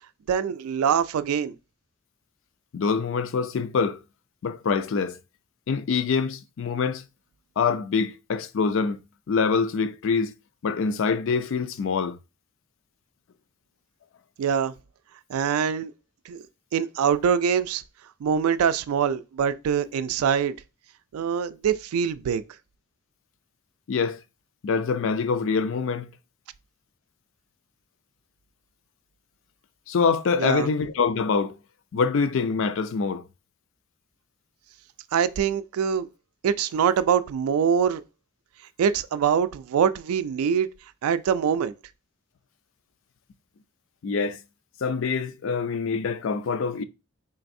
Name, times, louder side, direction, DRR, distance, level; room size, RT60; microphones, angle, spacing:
voice 1, 0.3-1.5 14.4-14.7 15.3-15.9 16.3-16.4 16.7-17.8 18.2-20.5 21.1-22.4 30.4-30.7 35.1-36.1 36.4-38.0 38.8-40.7 41.0-41.7, right 7 dB, 85° right, 0.3 m, -24 dB
voice 2, 2.7-4.0 4.4-5.2 5.7-7.0 7.6-9.0 9.3-10.3 10.6-12.2 23.9-24.2 24.6-26.1 29.9-31.6 31.9-33.2 44.0-44.4 44.8-46.8, left 5 dB, 60° left, 0.4 m, -25 dB
3.8 x 3.3 x 2.6 m
head